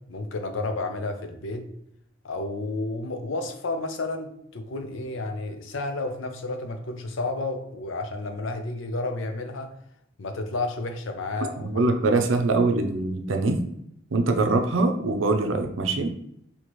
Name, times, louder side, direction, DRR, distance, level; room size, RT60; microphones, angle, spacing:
voice 1, 0.0-1.6 2.2-9.7 10.2-12.2, left 2 dB, 75° left, 6 dB, 0.6 m, -31 dB
voice 2, 11.6-13.6 14.1-16.1, right 3 dB, 75° right, 4 dB, 0.5 m, -23 dB
4.3 x 2.9 x 3.0 m, 0.74 s
head